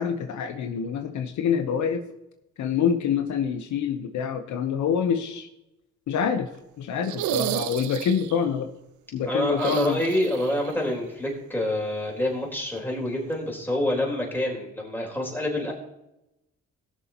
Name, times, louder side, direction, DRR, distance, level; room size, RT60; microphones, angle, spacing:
voice 1, 0.0-2.0 2.6-5.5 6.1-6.5 6.8-8.7 9.1-10.0, left 7 dB, 70° left, 7 dB, 1.0 m, -26 dB
sound 1, 7.0-8.4 9.5-10.7 11.0-11.1 12.7-12.8, right 12 dB, 75° right, 0.6 m, -31 dB
voice 2, 9.2-15.7, left 1 dB, 5° left, -2 dB, 4.1 m, -27 dB
18.0 x 7.0 x 3.0 m, 0.90 s
cardioid pair, 90°, 30 cm